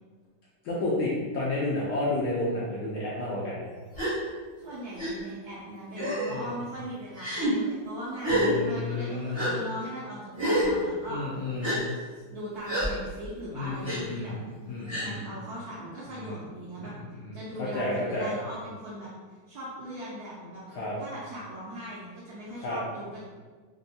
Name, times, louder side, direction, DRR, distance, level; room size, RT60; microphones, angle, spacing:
voice 1, 0.6-3.7 6.3-6.5 8.3-9.5 11.1-11.8 13.5-14.4 14.7-15.2 16.1-16.4 16.8-16.9 17.2-18.3 20.7-20.9 22.6-22.8, left 2 dB, 75° left, -6 dB, 0.9 m, -31 dB
Gasp, 3.9-4.1 5.0-5.1 5.9-6.3 7.2-7.5 8.2-8.5 9.3-9.5 10.4-10.7 11.6-11.8 12.7-12.9 13.8-14.0 14.9-15.1, right 1 dB, 30° right, 0.5 m, -27 dB
voice 2, 4.6-11.2 11.6-14.3 15.0-16.9 17.3-19.1 19.5-20.6 21.0-23.2, equal, 70° right, -7 dB, 0.9 m, -39 dB
3.4 x 2.2 x 2.7 m, 1.4 s
omnidirectional pair, 2.2 m